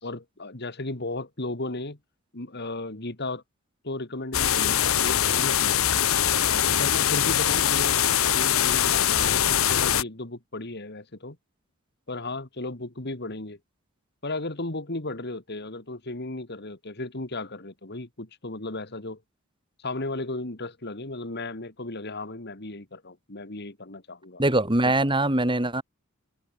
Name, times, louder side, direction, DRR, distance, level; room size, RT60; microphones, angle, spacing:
voice 1, 0.0-2.0 2.3-3.4 3.8-5.8 6.8-8.0 8.3-11.4 12.1-13.6 14.2-19.2 19.8-24.4 24.8-24.9, left 2 dB, 50° left, 2.4 m, -35 dB
sound 1, 4.3-10.0, left 10 dB, 75° left, 1.2 m, -22 dB
voice 2, 24.4-25.8, right 2 dB, 25° right, 3.2 m, -22 dB
head